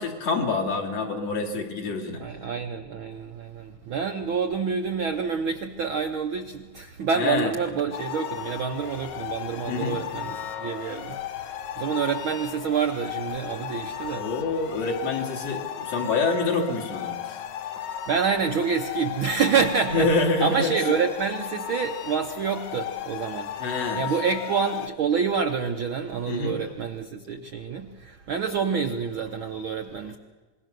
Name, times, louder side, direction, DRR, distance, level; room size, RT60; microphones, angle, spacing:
voice 1, 0.0-2.2 7.2-7.5 9.7-10.0 14.1-17.4 19.9-20.9 23.6-24.0 26.3-26.6, left 3 dB, 55° left, 2 dB, 3.7 m, -26 dB
voice 2, 2.2-14.3 18.1-20.1 20.4-23.5 23.9-30.2, right 6 dB, 65° right, 5 dB, 1.3 m, -27 dB
sound 1, 7.9-24.9, left 10 dB, 85° left, 2.6 m, -35 dB
26.0 x 21.5 x 6.6 m, 1.4 s
omnidirectional pair, 3.4 m